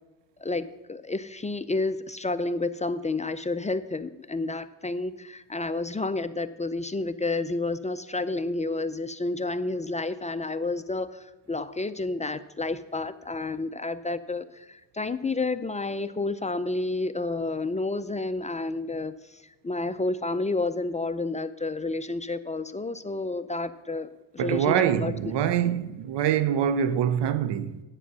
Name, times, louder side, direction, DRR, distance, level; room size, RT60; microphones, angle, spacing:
voice 1, 0.4-25.3, left 2 dB, 15° left, 0.5 m, -30 dB
voice 2, 24.4-27.8, right 9 dB, 80° right, 0.8 m, -24 dB
9.9 x 8.3 x 6.1 m
cardioid pair, 85°, 41 cm